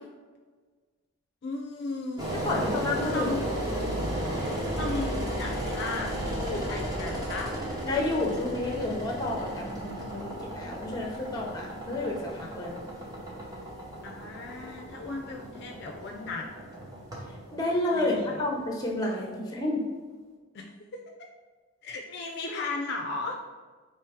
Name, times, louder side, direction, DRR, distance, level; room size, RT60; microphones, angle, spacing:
voice 1, 1.4-2.3 3.0-3.4 4.8-7.5 14.0-16.5 17.9-18.4 20.5-20.7 20.9-21.0 21.8-23.4, left 2 dB, 50° left, 1 dB, 0.4 m, -35 dB
Engine, 2.2-19.1, right 1 dB, 20° right, 0.8 m, -34 dB
voice 2, 2.4-3.3 7.8-12.7 17.5-19.8, left 2 dB, 20° left, -1 dB, 0.7 m, -30 dB
4.5 x 3.0 x 3.4 m, 1.4 s
head